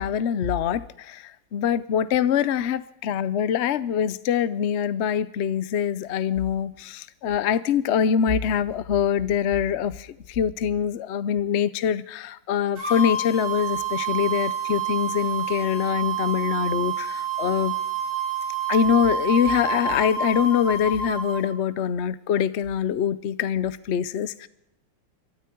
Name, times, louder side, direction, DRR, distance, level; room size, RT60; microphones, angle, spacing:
voice 1, 0.0-17.7 18.7-24.5, left 8 dB, 65° left, 16 dB, 0.6 m, -24 dB
sound 1, 12.8-21.4, right 5 dB, 60° right, 7.2 m, -28 dB
24.0 x 13.0 x 4.6 m, 0.79 s
omnidirectional pair, 2.1 m